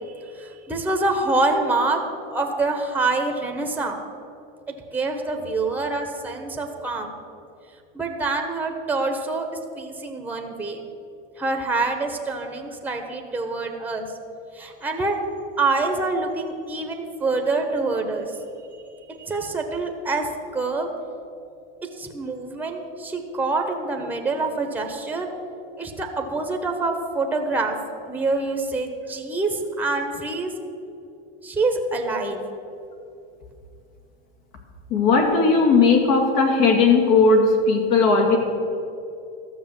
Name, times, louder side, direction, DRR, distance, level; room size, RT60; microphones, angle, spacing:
voice 1, 0.3-2.0 2.3-4.0 4.7-7.1 7.9-9.5 9.8-10.9 11.4-14.0 14.5-15.2 15.6-18.3 19.1-20.9 22.0-25.3 25.8-27.7 28.1-30.5 31.4-32.4, right 3 dB, 5° right, 4 dB, 1.2 m, -26 dB
voice 2, 34.9-38.4, left 4 dB, 60° left, 2 dB, 2.4 m, -17 dB
13.0 x 6.7 x 7.5 m, 2.6 s
supercardioid pair, 125°, 30 cm